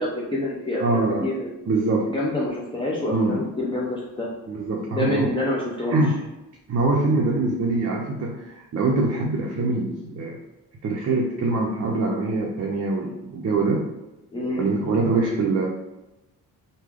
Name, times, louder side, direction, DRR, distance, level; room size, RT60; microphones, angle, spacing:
voice 1, 0.0-1.5 2.1-4.3 4.9-6.0 14.3-14.6, left 1 dB, 15° left, -6 dB, 0.6 m, -27 dB
voice 2, 0.8-1.2 1.7-2.1 3.1-3.4 4.5-5.3 5.9-6.2 6.7-10.4 10.8-13.9 14.6-15.7, right 3 dB, 40° right, -2 dB, 0.6 m, -23 dB
3.2 x 2.2 x 3.6 m, 0.97 s
cardioid pair, 85°, 36 cm